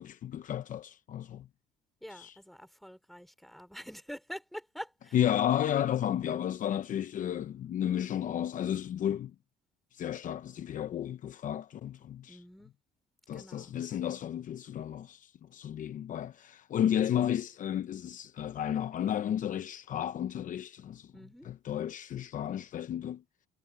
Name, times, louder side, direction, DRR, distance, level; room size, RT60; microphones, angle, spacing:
voice 1, 0.0-1.5 2.1-2.4 5.1-9.3 9.9-12.4 13.3-21.1 21.4-23.2, left 10 dB, 50° left, 0.8 m, -32 dB
voice 2, 2.0-5.2 12.3-12.7 13.3-13.7 21.1-21.5, equal, ahead, 4.6 m, -46 dB
cardioid pair, 110°, 17 cm